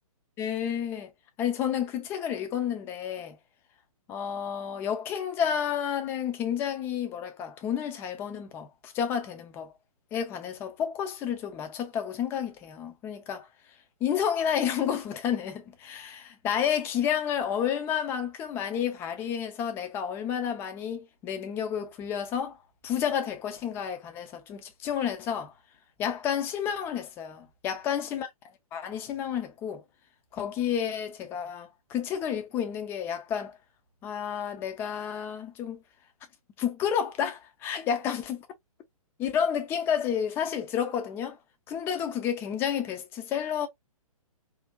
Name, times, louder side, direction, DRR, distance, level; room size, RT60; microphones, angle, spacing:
voice 1, 0.4-1.1 1.4-3.4 4.1-9.7 10.1-13.5 14.0-22.6 22.8-25.5 26.0-28.3 28.7-29.8 30.3-33.6 34.0-35.8 36.6-38.4 39.2-41.4 41.7-43.7, left 8 dB, 10° left, 0.3 m, -30 dB
2.7 x 2.5 x 2.2 m
figure-of-eight pair, 125°, 19 cm